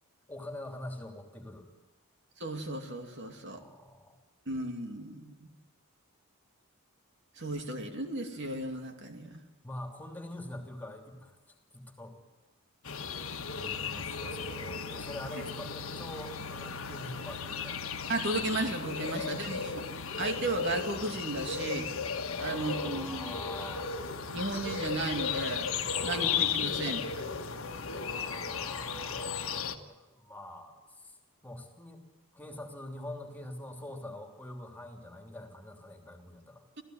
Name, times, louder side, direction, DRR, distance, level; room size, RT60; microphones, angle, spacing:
voice 1, 0.3-1.7 3.5-4.2 9.6-11.4 11.7-12.2 13.6-17.9 19.1-19.6 22.3-23.9 25.9-26.6 27.9-32.0 32.3-36.6, left 1 dB, 10° left, 3 dB, 3.1 m, -45 dB
voice 2, 2.4-3.6 4.5-5.5 7.4-9.4 18.1-21.9 22.4-23.4 24.3-25.7 26.0-27.3 36.8-36.9, right 2 dB, 55° right, 4 dB, 2.6 m, -35 dB
sound 1, 12.8-29.8, left 6 dB, 65° left, 1.6 m, -35 dB
27.0 x 16.5 x 9.5 m, 1.1 s
head